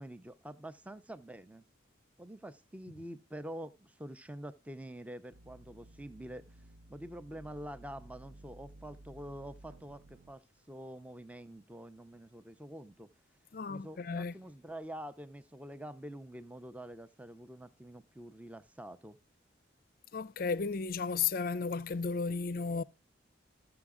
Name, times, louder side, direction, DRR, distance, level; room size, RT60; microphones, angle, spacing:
voice 1, 0.0-1.7 2.2-13.1 13.7-19.2, right 1 dB, 5° right, 0.4 m, -46 dB
sound 1, 5.3-10.3, right 1 dB, 85° right, 0.6 m, -55 dB
voice 2, 13.5-14.3 20.1-22.8, left 5 dB, 50° left, 0.4 m, -34 dB
14.0 x 6.8 x 3.6 m
head